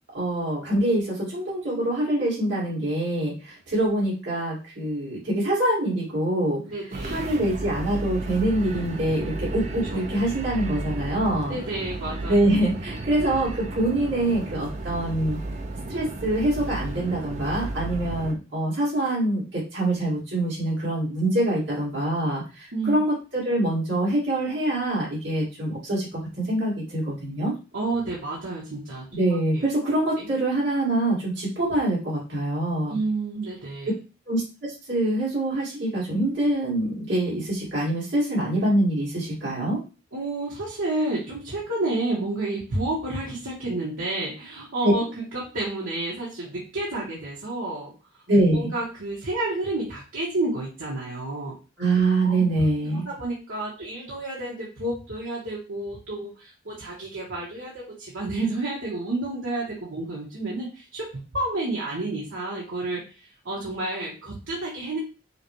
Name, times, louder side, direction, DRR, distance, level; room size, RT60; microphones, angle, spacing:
voice 1, 0.1-6.6 7.1-11.6 12.3-15.4 15.9-27.5 29.1-33.0 34.3-39.8 44.8-44.9 48.3-48.7 51.8-53.1, right 1 dB, 65° right, -6 dB, 2.3 m, -25 dB
voice 2, 6.7-7.1 9.9-10.0 11.5-12.3 22.7-23.0 27.7-29.1 29.5-29.6 30.2-30.3 32.8-33.9 40.1-45.1 45.3-47.9 48.5-51.6 52.2-52.5 52.9-65.0, right 2 dB, 85° right, -5 dB, 1.2 m, -30 dB
sound 1, 6.9-18.3, right 2 dB, 35° right, 0.5 m, -33 dB
5.5 x 2.3 x 3.1 m, 0.32 s
head